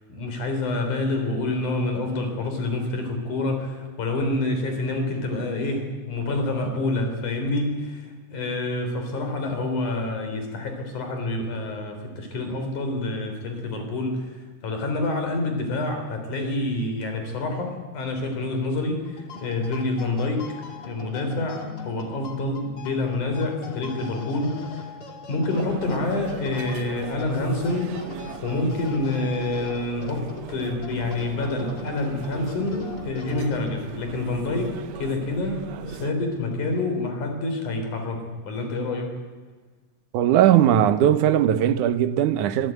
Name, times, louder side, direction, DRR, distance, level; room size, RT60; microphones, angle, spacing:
voice 1, 0.1-25.0 25.3-39.1, left 2 dB, 85° left, 5.4 m, -27 dB
sound 1, 19.1-34.0, left 4 dB, 45° left, 3.3 m, -41 dB
sound 2, 25.5-36.1, right 11 dB, 70° right, 2.0 m, -40 dB
voice 2, 40.1-42.7, right 11 dB, 90° right, 2.5 m, -19 dB
25.0 x 16.5 x 9.2 m
omnidirectional pair, 3.4 m